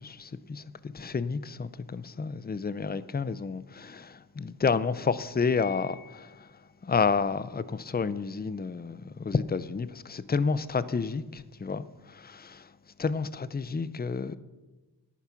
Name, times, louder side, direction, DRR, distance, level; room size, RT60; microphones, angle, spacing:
voice 1, 0.0-6.5 6.8-12.7 13.0-14.4, left 5 dB, 25° left, 0.6 m, -30 dB
Piano, 5.5-6.7, left 9 dB, 55° left, 1.6 m, -47 dB
11.0 x 9.4 x 5.8 m
cardioid pair, 55°, 41 cm